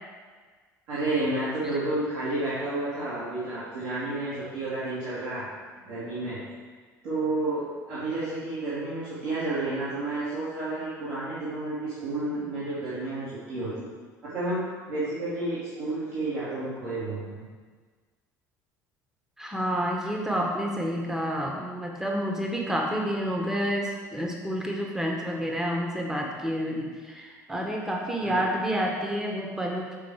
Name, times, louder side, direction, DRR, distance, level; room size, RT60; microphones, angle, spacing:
voice 1, 0.9-5.5 5.9-6.4 7.0-13.9 14.3-17.5 28.2-28.4, right 2 dB, 60° right, -12 dB, 2.2 m, -31 dB
voice 2, 19.4-30.0, equal, 5° right, 0 dB, 1.1 m, -29 dB
7.0 x 4.6 x 4.7 m, 1.5 s
figure-of-eight pair, 60°, 10 cm